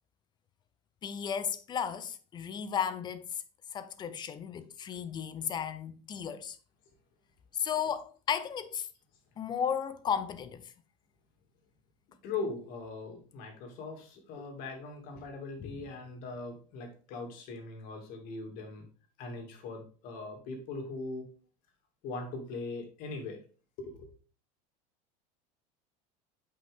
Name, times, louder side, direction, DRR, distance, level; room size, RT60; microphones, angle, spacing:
voice 1, 1.0-3.4 3.7-6.6 7.5-8.9 9.4-10.7 15.6-15.9, left 8 dB, 25° left, 0.6 m, -34 dB
voice 2, 12.2-18.9 19.2-21.3 22.0-23.4 23.8-24.1, left 3 dB, 55° left, 2.6 m, -40 dB
8.1 x 5.4 x 3.7 m
supercardioid pair, 145°, 17 cm